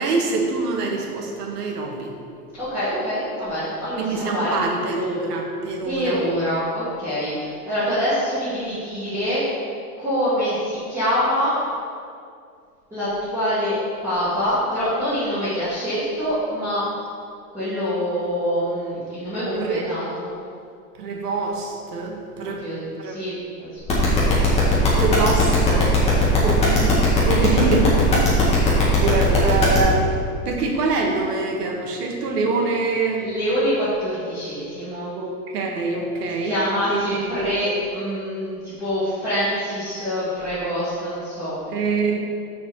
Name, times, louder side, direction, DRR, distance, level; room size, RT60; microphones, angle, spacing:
voice 1, 0.0-2.1 4.0-6.2 19.6-19.8 21.0-22.6 23.0-23.1 25.0-25.9 26.4-27.0 27.3-28.3 29.0-30.1 30.5-33.3 35.2-36.5 36.9-37.5 41.7-42.2, right 3 dB, 70° right, 1 dB, 1.9 m, -24 dB
voice 2, 2.6-4.6 5.8-9.4 10.0-11.5 12.9-13.7 14.0-16.8 17.5-20.3 22.4-23.3 23.6-24.8 25.8-25.9 27.3-27.8 33.2-35.1 36.3-41.6, equal, 5° right, -15 dB, 2.6 m, -25 dB
sound 1, 23.9-29.8, left 4 dB, 15° left, 1.7 m, -18 dB
6.6 x 6.6 x 7.1 m, 2.3 s
supercardioid pair, 170°, 48 cm